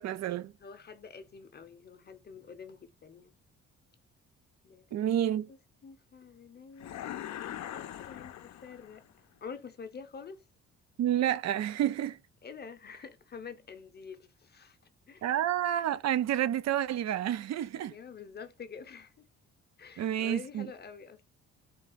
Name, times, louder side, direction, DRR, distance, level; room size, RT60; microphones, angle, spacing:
voice 1, 0.0-0.5 4.9-5.5 11.0-12.2 15.2-17.9 20.0-20.7, right 11 dB, 60° right, 0.5 m, -29 dB
voice 2, 0.6-3.3 4.6-5.0 5.5-9.1 9.4-10.4 12.4-14.8 15.1-15.3 17.9-19.1 19.8-21.2, left 6 dB, 35° left, 0.7 m, -47 dB
sound 1, 6.8-9.1, left 11 dB, 65° left, 0.6 m, -41 dB
3.8 x 2.3 x 3.9 m
cardioid pair, 90°, 30 cm